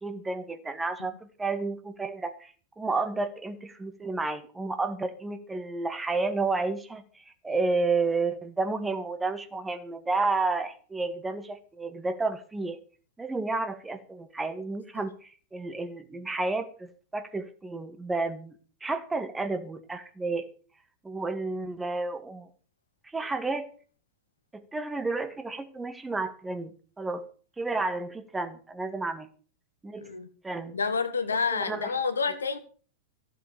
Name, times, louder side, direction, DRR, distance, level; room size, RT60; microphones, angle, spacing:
voice 1, 0.0-12.8 13.2-18.5 18.8-20.5 21.0-22.5 23.1-23.7 24.5-27.2 27.6-29.3 29.8-30.1 30.4-30.7 31.5-31.9, right 3 dB, 10° right, 1.8 m, -31 dB
voice 2, 30.7-32.6, left 5 dB, 75° left, 1.6 m, -29 dB
15.0 x 7.9 x 6.8 m
figure-of-eight pair, 90°, 0 cm